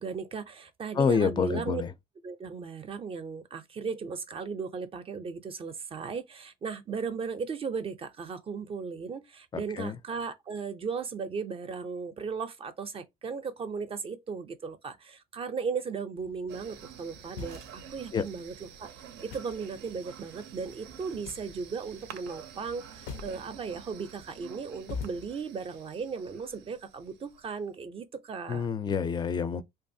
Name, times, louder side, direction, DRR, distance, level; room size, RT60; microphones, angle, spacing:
voice 1, 0.0-1.8 2.2-18.9 19.2-28.7, right 5 dB, 35° right, 0.4 m, -36 dB
voice 2, 1.0-1.9 9.8-10.0 18.1-18.2 28.5-29.6, left 6 dB, 25° left, 0.4 m, -27 dB
sound 1, 16.2-25.3, left 5 dB, 80° left, 0.5 m, -46 dB
sound 2, 16.5-27.7, right 9 dB, 90° right, 0.5 m, -49 dB
3.0 x 2.4 x 2.6 m
cardioid pair, 110°, 17 cm